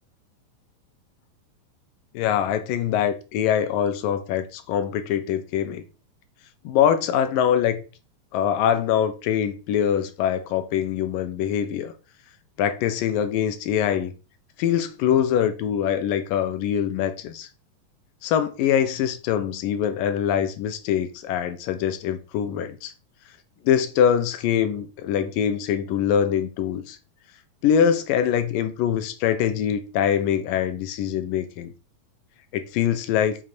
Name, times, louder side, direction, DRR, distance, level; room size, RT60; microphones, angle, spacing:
voice 1, 2.1-5.8 6.6-7.8 8.3-11.9 12.6-14.1 14.6-17.5 18.2-22.9 23.6-27.0 27.6-31.7 32.5-33.4, left 9 dB, 80° left, 2.6 m, -23 dB
6.5 x 5.7 x 6.1 m
omnidirectional pair, 4.0 m